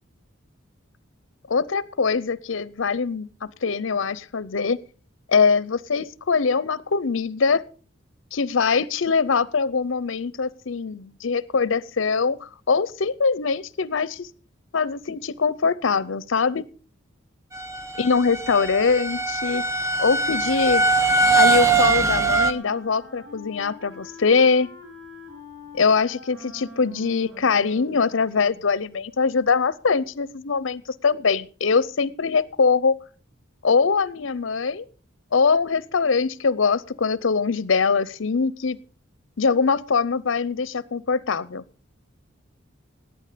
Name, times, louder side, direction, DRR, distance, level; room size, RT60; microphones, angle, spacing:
voice 1, 1.5-4.8 5.3-7.6 8.3-14.3 14.7-16.6 18.0-19.6 20.0-20.8 21.4-24.7 25.7-33.0 33.6-34.9 35.3-38.8 39.4-41.6, left 5 dB, 70° left, 20 dB, 0.6 m, -22 dB
sound 1, 17.5-22.5, right 3 dB, 15° right, 0.8 m, -21 dB
Wind instrument woodwind instrument, 20.7-28.8, left 1 dB, 55° right, 6.7 m, -45 dB
17.5 x 9.0 x 5.1 m, 0.38 s
head